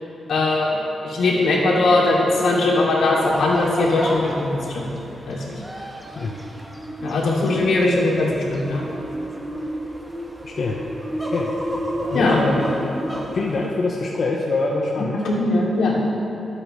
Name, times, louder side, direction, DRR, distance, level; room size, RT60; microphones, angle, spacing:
voice 1, 0.3-0.8 1.0-4.9 5.3-5.5 7.0-8.8 12.1-12.4 15.2-16.0, left 2 dB, 85° left, -4 dB, 2.8 m, -20 dB
sound 1, 3.2-13.7, equal, 10° right, 1.4 m, -31 dB
voice 2, 10.4-10.8 11.3-11.7 12.1-12.7 13.3-15.2, left 3 dB, 55° left, -2 dB, 1.0 m, -24 dB
22.5 x 8.7 x 3.3 m, 2.9 s
wide cardioid pair, 120°, 0 cm